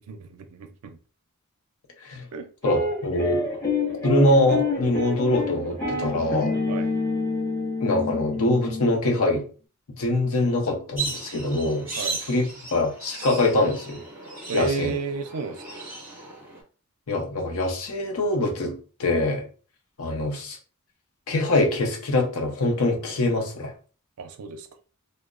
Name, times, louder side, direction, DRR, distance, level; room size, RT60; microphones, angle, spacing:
voice 1, 0.1-1.0 2.3-2.5 6.7-6.9 12.0-12.2 14.5-15.6 24.2-24.7, right 4 dB, 80° right, 0.4 m, -31 dB
voice 2, 2.6-3.4 4.0-6.5 7.8-9.5 10.0-11.9 12.3-12.4 12.7-14.0 14.5-14.9 17.1-19.4 20.0-20.6 21.3-23.7, left 2 dB, 70° left, 0.6 m, -23 dB
sound 1, 2.6-9.2, left 3 dB, 15° left, 0.9 m, -27 dB
sound 2, 10.9-16.6, right 3 dB, 10° right, 1.4 m, -36 dB
2.9 x 2.1 x 2.3 m
head